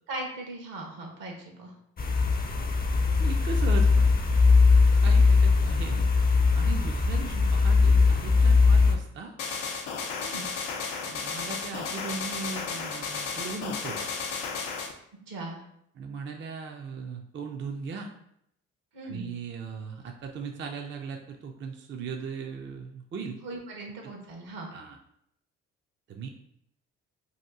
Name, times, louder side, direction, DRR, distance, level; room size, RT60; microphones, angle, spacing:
voice 1, 0.1-1.7 5.1-5.3 5.6-5.7 7.3-7.4 10.2-10.5 15.3-15.6 18.9-19.2 23.4-24.7, right 2 dB, 70° right, 1 dB, 1.0 m, -39 dB
sound 1, 2.0-9.0, left 4 dB, 25° left, 0.5 m, -20 dB
voice 2, 3.2-4.1 5.0-6.1 6.5-9.3 11.0-14.1 16.0-18.1 19.0-23.4 24.7-25.0 26.1-26.3, right 5 dB, 35° right, 3 dB, 0.5 m, -38 dB
sound 2, 9.4-14.9, left 5 dB, 90° left, 0.5 m, -33 dB
2.8 x 2.5 x 3.5 m, 0.74 s
hypercardioid pair, 50°, 35 cm